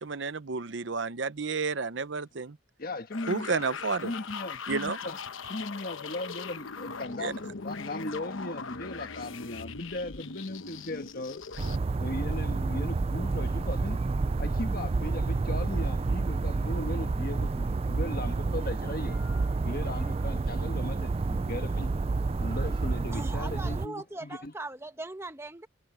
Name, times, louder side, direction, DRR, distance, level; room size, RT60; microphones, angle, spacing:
voice 1, 0.0-2.6 3.3-4.1 4.7-5.0 7.2-7.3, right 4 dB, 65° right, 0.8 m, -31 dB
voice 2, 2.8-3.6 4.0-5.2 5.5-11.4 12.0-14.0 14.4-21.9 22.4-24.5, left 2 dB, 45° left, 1.5 m, -38 dB
sound 1, 3.1-11.8, left 5 dB, 80° left, 1.0 m, -40 dB
sound 2, 11.6-23.9, right 3 dB, 30° right, 0.3 m, -29 dB
voice 3, 23.1-25.7, right 2 dB, 15° right, 1.0 m, -40 dB
head